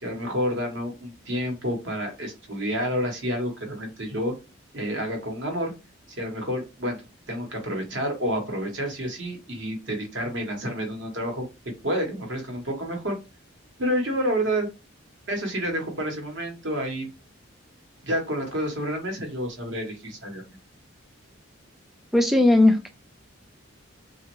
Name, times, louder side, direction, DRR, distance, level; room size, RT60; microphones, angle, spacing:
voice 1, 0.0-4.3 4.7-5.7 6.2-7.0 7.3-11.5 11.8-13.2 13.8-14.7 15.3-17.1 18.0-20.4, equal, 60° right, 2 dB, 1.0 m, -29 dB
voice 2, 22.1-22.9, left 2 dB, ahead, 5 dB, 0.3 m, -17 dB
2.9 x 2.3 x 3.0 m, 0.27 s
head